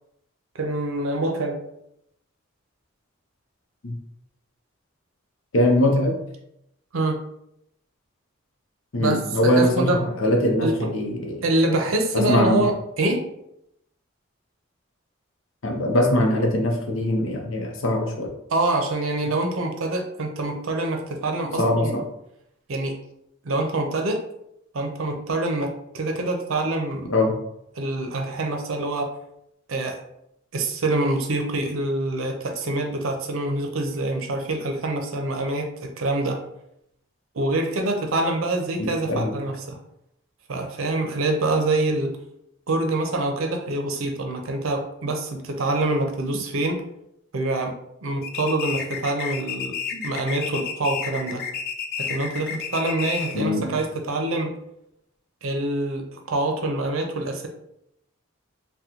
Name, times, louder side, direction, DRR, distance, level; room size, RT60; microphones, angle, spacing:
voice 1, 0.5-1.6 6.9-7.2 9.0-9.2 9.4-10.0 10.6-10.8 11.4-13.3 18.5-22.0 22.7-23.0 23.4-24.2 24.7-27.1 27.8-29.1 29.7-30.0 30.5-36.4 37.3-39.8 40.5-42.2 42.7-46.8 47.3-47.8 48.0-51.4 52.0-54.5 55.4-57.5, right 2 dB, 85° right, 4 dB, 0.6 m, -25 dB
voice 2, 5.5-6.2 8.9-11.4 12.1-12.7 15.6-18.3 21.6-22.0 27.1-27.3 38.8-39.3 49.9-50.1 53.3-53.8, left 1 dB, 75° left, 1 dB, 0.7 m, -22 dB
sound 1, 48.2-53.5, left 6 dB, 45° left, 0.3 m, -31 dB
2.8 x 2.2 x 3.6 m, 0.78 s
head